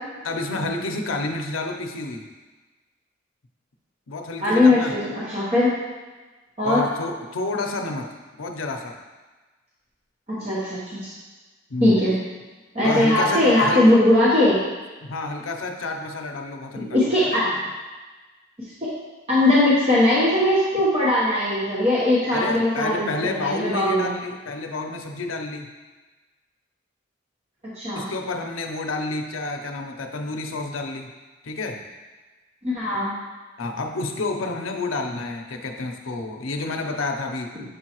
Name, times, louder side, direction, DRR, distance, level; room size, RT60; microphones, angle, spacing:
voice 1, 0.2-2.3 4.1-4.9 6.6-9.0 11.7-12.0 12.8-13.9 15.0-17.6 22.3-25.7 27.9-31.1 31.4-31.8 33.6-37.5, left 3 dB, 80° left, 4 dB, 0.6 m, -29 dB
voice 2, 4.4-5.7 6.6-6.8 10.3-11.1 11.8-12.1 12.7-14.6 16.7-17.4 18.6-18.7 19.3-24.1 27.7-28.1 32.6-33.1, left 1 dB, 35° right, -9 dB, 1.1 m, -20 dB
6.8 x 4.6 x 3.0 m, 1.3 s
head